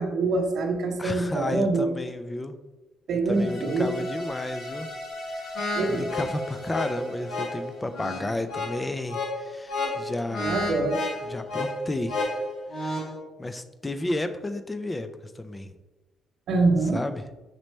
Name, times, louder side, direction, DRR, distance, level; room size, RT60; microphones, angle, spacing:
voice 1, 0.0-1.9 3.1-3.9 5.7-6.0 10.4-11.0 16.5-17.0, right 3 dB, 70° right, 2 dB, 0.6 m, -25 dB
voice 2, 1.0-2.6 3.3-4.9 5.2-5.6 5.9-10.7 11.3-12.2 12.7-13.1 13.4-15.7 16.9-17.2, left 2 dB, 20° left, 9 dB, 0.4 m, -32 dB
sound 1, 3.2-8.5, left 1 dB, 65° left, 1.5 m, -39 dB
sound 2, 5.6-13.2, left 2 dB, 85° left, 1.0 m, -31 dB
5.3 x 3.1 x 3.1 m, 1.1 s
cardioid pair, 90°, 0 cm